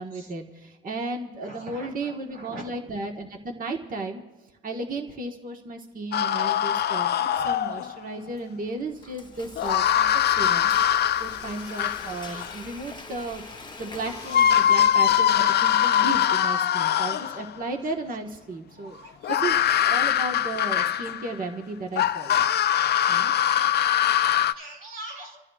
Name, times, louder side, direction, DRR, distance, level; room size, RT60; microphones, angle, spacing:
voice 1, 0.0-4.2 4.6-10.7 11.2-13.4 13.8-22.4 23.1-23.3, right 2 dB, 45° right, 2 dB, 1.5 m, -34 dB
voice 2, 1.4-2.1 2.4-2.7 12.3-12.4 15.4-15.8 16.6-16.8 18.8-20.2 22.8-23.1 23.8-23.9 24.3-25.4, right 2 dB, 90° right, 1 dB, 2.5 m, -43 dB
sound 1, 6.1-8.0 9.6-12.5 13.9-14.0 14.3-17.5 19.2-21.4 22.0-24.5, left 10 dB, 55° left, 0.5 m, -22 dB
Frying (food), 8.7-15.8, left 3 dB, 25° left, 1.0 m, -44 dB
30.0 x 14.0 x 2.4 m, 1.2 s
cardioid pair, 90°, 20 cm